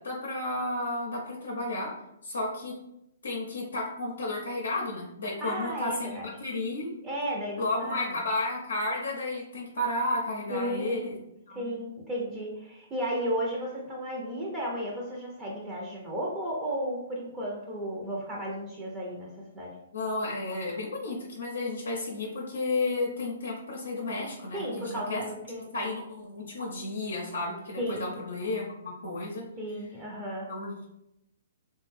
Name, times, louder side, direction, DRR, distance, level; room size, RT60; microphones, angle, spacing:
voice 1, 0.0-1.9 2.2-2.7 3.2-6.9 7.6-11.2 11.5-11.8 19.9-25.2 25.7-29.4 30.5-30.9, left 2 dB, 75° left, -2 dB, 0.6 m, -32 dB
voice 2, 5.4-6.3 7.0-8.2 10.5-11.2 11.5-19.3 19.5-19.7 24.5-25.7 27.8-28.1 29.6-30.5, equal, 20° right, -4 dB, 0.6 m, -34 dB
2.5 x 2.2 x 3.2 m, 0.82 s
hypercardioid pair, 130°, 0 cm